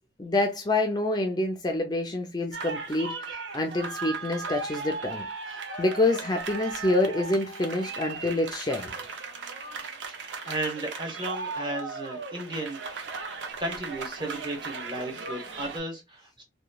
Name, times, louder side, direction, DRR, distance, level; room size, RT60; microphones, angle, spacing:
voice 1, 0.2-8.9, left 2 dB, 25° left, 0.4 m, -27 dB
sound 1, 2.5-15.8, right 4 dB, 80° right, 0.6 m, -37 dB
voice 2, 10.1-16.4, right 2 dB, 25° right, 0.9 m, -35 dB
3.0 x 2.2 x 2.3 m
head